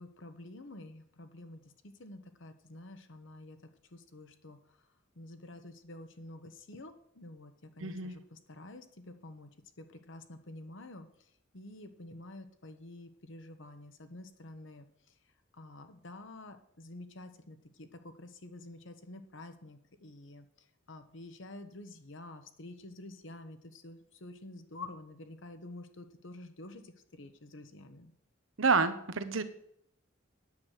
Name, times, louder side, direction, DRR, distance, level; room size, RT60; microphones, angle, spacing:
voice 1, 0.0-4.6 5.1-9.5 9.8-11.1 11.5-14.9 15.5-20.5 20.9-28.1, left 2 dB, 65° left, 8 dB, 1.2 m, -49 dB
voice 2, 7.8-8.2 28.6-29.4, right 4 dB, 80° right, 11 dB, 1.0 m, -28 dB
9.5 x 7.7 x 6.6 m, 0.72 s
head